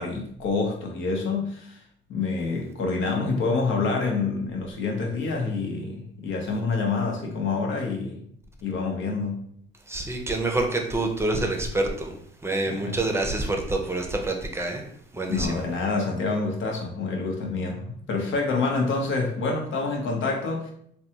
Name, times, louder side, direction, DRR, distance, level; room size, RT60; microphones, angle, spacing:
voice 1, 0.0-1.8 2.1-8.2 8.6-9.4 12.6-13.0 15.3-20.7, left 4 dB, 75° left, 0 dB, 0.8 m, -27 dB
voice 2, 9.9-12.2 12.4-14.8 15.1-15.6, right 2 dB, 15° right, 2 dB, 0.6 m, -27 dB
3.4 x 2.2 x 2.8 m, 0.66 s
cardioid pair, 90°, 20 cm